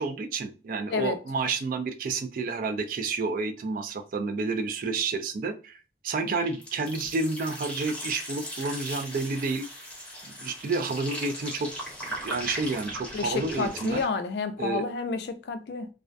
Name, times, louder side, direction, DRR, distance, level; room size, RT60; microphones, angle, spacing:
voice 1, 0.0-5.8 6.0-9.7 10.2-11.7 12.0-14.0 14.6-14.8, right 4 dB, 50° right, 0.3 m, -30 dB
sound 1, 6.4-14.0, equal, 5° left, 0.7 m, -38 dB
voice 2, 13.1-15.9, left 4 dB, 65° left, 0.3 m, -30 dB
2.3 x 2.2 x 2.5 m
head